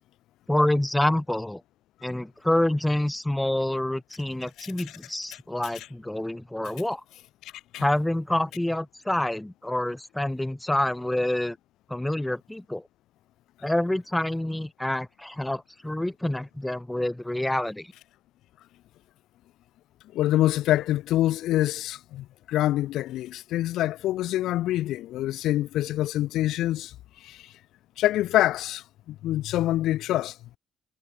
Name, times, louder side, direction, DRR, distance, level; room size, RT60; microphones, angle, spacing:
voice 1, 0.5-1.6 2.0-7.0 7.8-11.6 11.9-12.8 13.6-17.9, left 1 dB, 10° left, 3.4 m, -27 dB
voice 2, 7.4-7.9 20.1-26.9 27.2-27.5 28.0-30.4, left 14 dB, 85° left, 2.2 m, -26 dB
cardioid pair, 90°, 0 cm